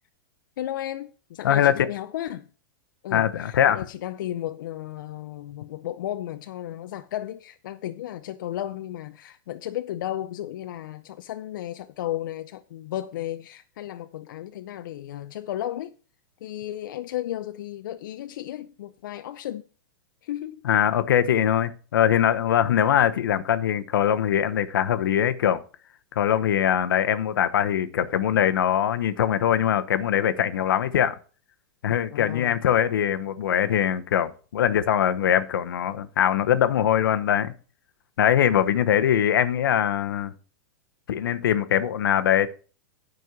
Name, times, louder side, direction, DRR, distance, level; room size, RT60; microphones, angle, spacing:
voice 1, 0.6-2.5 3.0-16.0 16.4-19.7 20.2-20.6 32.1-32.6, left 13 dB, 70° left, 0.5 m, -34 dB
voice 2, 1.4-1.9 3.1-3.8 20.6-25.6 26.2-31.2 31.8-37.5 38.2-40.3 41.1-42.5, left 10 dB, 85° left, 0.9 m, -22 dB
9.5 x 5.4 x 6.0 m
supercardioid pair, 160°, 11 cm